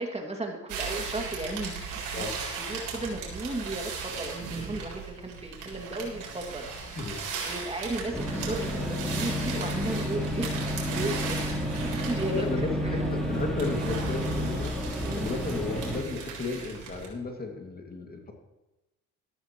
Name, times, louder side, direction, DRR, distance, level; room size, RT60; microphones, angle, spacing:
voice 1, 0.0-10.6 11.0-11.6 11.9-12.5 12.8-13.1 14.2-14.3 15.0-15.3, right 2 dB, 20° right, 2 dB, 2.2 m, -35 dB
sound 1, 0.7-17.1, right 4 dB, 70° right, 3.9 m, -37 dB
voice 2, 6.9-7.2 11.7-11.9 12.3-18.3, left 3 dB, 30° left, 2 dB, 2.2 m, -34 dB
Bus Ambience Gwangju to Mokpo, 8.1-16.0, equal, ahead, 3.4 m, -31 dB
13.5 x 13.5 x 3.0 m, 0.99 s
supercardioid pair, 80°, 31 cm